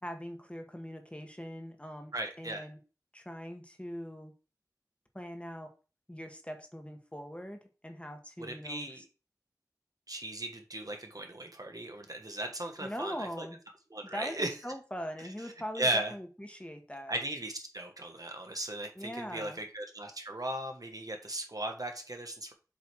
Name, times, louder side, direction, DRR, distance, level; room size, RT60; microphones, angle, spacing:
voice 1, 0.0-2.8 3.1-4.3 5.1-5.7 6.1-9.0 12.8-13.6 14.1-17.1 18.9-19.6, equal, 20° left, 5 dB, 1.3 m, -41 dB
voice 2, 2.1-2.7 8.4-9.0 10.1-13.5 13.9-14.5 15.7-16.1 17.1-22.5, right 1 dB, 65° right, 3 dB, 1.5 m, -37 dB
7.4 x 3.5 x 4.6 m, 0.33 s
wide cardioid pair, 40°, 7 cm